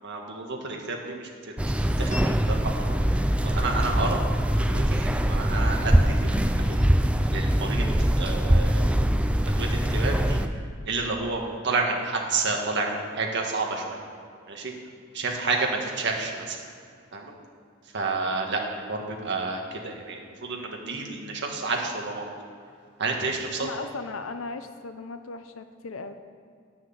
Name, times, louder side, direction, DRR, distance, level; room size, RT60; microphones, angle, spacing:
voice 1, 0.0-2.8 3.1-4.2 4.6-7.9 8.2-10.4 10.8-14.0 14.5-14.7 15.1-16.6 17.1-17.3 17.9-22.3 23.0-23.7, right 3 dB, 60° right, 1 dB, 1.6 m, -30 dB
sound 1, 1.6-10.5, equal, 5° right, 0.4 m, -23 dB
voice 2, 23.6-26.1, left 3 dB, 80° left, 9 dB, 0.7 m, -37 dB
9.9 x 6.2 x 7.1 m, 2.3 s
head